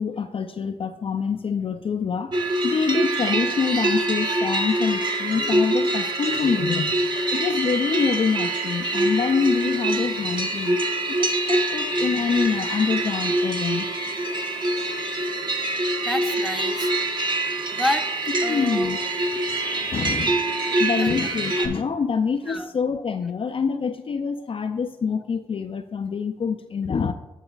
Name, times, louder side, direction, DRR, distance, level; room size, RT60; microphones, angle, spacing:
voice 1, 0.0-2.4 2.6-10.8 11.1-13.9 18.5-19.0 19.4-27.1, left 6 dB, 45° left, 7 dB, 0.5 m, -26 dB
sound 1, 2.3-21.7, right 2 dB, 35° right, 1.2 m, -25 dB
voice 2, 16.0-16.9 17.7-18.1 18.4-18.9 21.0-21.3 22.5-22.7, left 1 dB, ahead, 5 dB, 0.9 m, -29 dB
12.5 x 4.8 x 2.4 m, 1.0 s
supercardioid pair, 50°, 13 cm